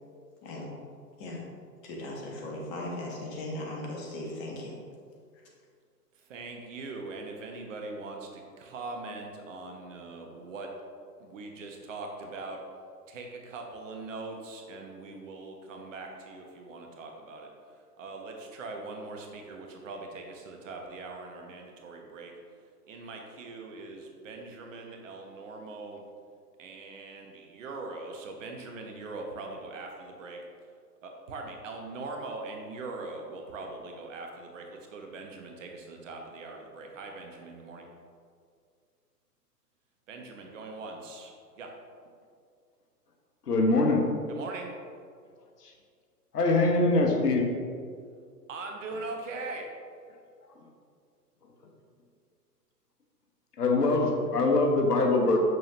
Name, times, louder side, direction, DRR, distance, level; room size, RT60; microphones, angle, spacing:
voice 1, 0.4-0.8 1.2-1.4 1.8-4.8, left 1 dB, 30° left, -2 dB, 1.4 m, -38 dB
voice 2, 6.2-10.7 11.2-12.6 13.1-17.5 18.0-22.3 22.9-26.1 26.6-30.4 31.0-37.9 40.1-41.7 44.3-44.7 48.5-49.7, right 3 dB, 50° right, 2 dB, 1.1 m, -41 dB
voice 3, 43.5-44.0 45.6-45.7 46.3-47.5 53.6-55.4, left 2 dB, 70° left, 1 dB, 1.2 m, -23 dB
6.7 x 6.3 x 3.0 m, 2.2 s
figure-of-eight pair, 115°, 48 cm